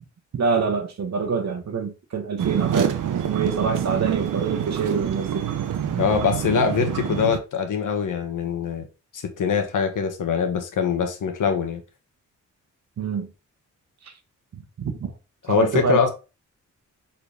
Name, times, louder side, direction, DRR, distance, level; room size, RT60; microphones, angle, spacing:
voice 1, 0.3-3.0 3.3-5.5 13.0-13.3 14.0-14.1 14.8-15.1 15.5-16.1, right 5 dB, 60° right, 1.4 m, -26 dB
sound 1, 2.4-7.4, right 9 dB, 80° right, 0.9 m, -26 dB
voice 2, 6.0-8.9 9.1-11.8 15.5-16.1, left 6 dB, 80° left, 1.4 m, -23 dB
6.9 x 4.3 x 3.4 m
wide cardioid pair, 180°, 31 cm